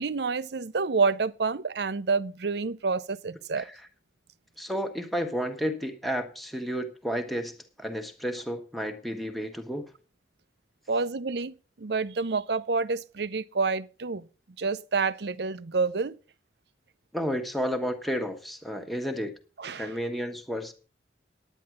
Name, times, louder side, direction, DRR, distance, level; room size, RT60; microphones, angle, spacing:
voice 1, 0.0-3.7 10.9-14.3 14.6-16.2 19.6-19.9, right 4 dB, 70° right, 0.6 m, -28 dB
voice 2, 4.6-9.9 17.1-19.3 19.8-20.7, equal, ahead, 1.2 m, -32 dB
9.9 x 9.5 x 6.1 m
head